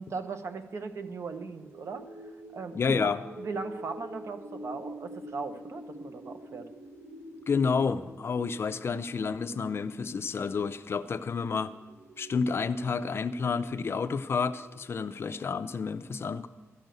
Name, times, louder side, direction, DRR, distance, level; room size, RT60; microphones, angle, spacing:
voice 1, 0.0-2.0 2.5-6.7, right 4 dB, 60° right, 7 dB, 1.0 m, -38 dB
sound 1, 1.5-15.7, equal, 85° right, 1.2 m, -47 dB
voice 2, 2.7-3.2 7.5-11.7 12.2-16.5, left 5 dB, 50° left, 12 dB, 0.5 m, -30 dB
13.0 x 6.8 x 9.0 m, 1.3 s
wide cardioid pair, 170°, 5 cm